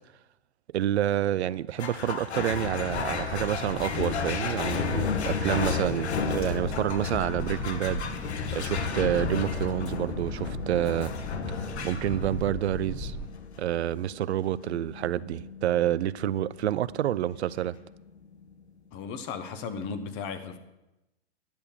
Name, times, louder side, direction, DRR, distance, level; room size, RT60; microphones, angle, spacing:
voice 1, 0.7-8.0 8.5-11.1 11.8-13.2 13.6-17.8, right 12 dB, 85° right, 0.5 m, -28 dB
sound 1, 1.8-18.5, left 6 dB, 85° left, 1.3 m, -33 dB
sound 2, 2.6-13.3, equal, 5° right, 1.0 m, -37 dB
voice 2, 18.9-20.6, left 5 dB, 35° left, 1.2 m, -35 dB
10.5 x 6.7 x 7.2 m
hypercardioid pair, 130°, 32 cm